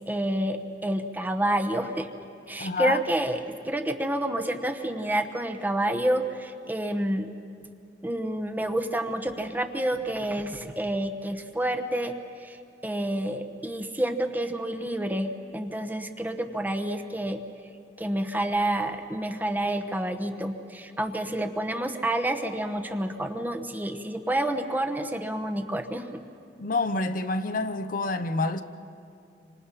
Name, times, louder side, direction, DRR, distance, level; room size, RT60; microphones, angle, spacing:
voice 1, 0.1-2.1 2.5-7.3 8.0-17.4 18.0-26.2, right 1 dB, 10° right, 1.0 m, -29 dB
voice 2, 2.6-3.0 26.6-28.6, left 3 dB, 50° left, 0.8 m, -27 dB
27.0 x 26.0 x 5.7 m
head